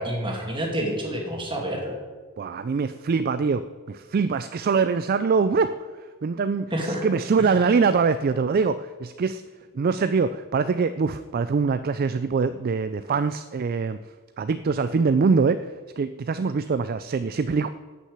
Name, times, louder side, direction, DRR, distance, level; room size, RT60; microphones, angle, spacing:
voice 1, 0.0-1.9 6.7-7.0 7.4-7.5, right 1 dB, 20° right, 0 dB, 2.3 m, -28 dB
voice 2, 2.4-9.4 9.7-14.0 14.4-17.7, right 5 dB, 40° right, 12 dB, 0.3 m, -24 dB
11.5 x 6.2 x 8.1 m, 1.4 s
head